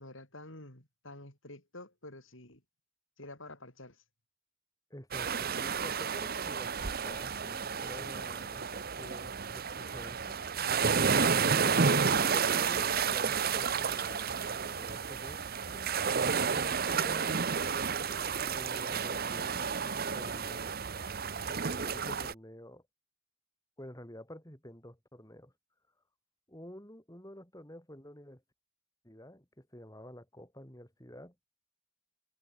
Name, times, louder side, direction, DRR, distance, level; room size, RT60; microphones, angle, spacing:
voice 1, 0.0-2.6 3.2-4.0, left 2 dB, 60° left, 5.9 m, -49 dB
voice 2, 4.9-10.5 11.6-16.0 16.4-17.5 18.3-20.8 21.5-22.8 23.8-25.5 26.5-28.4 29.0-31.3, equal, 15° left, 5.6 m, -49 dB
sound 1, 5.1-22.3, right 6 dB, 45° right, 0.9 m, -31 dB
head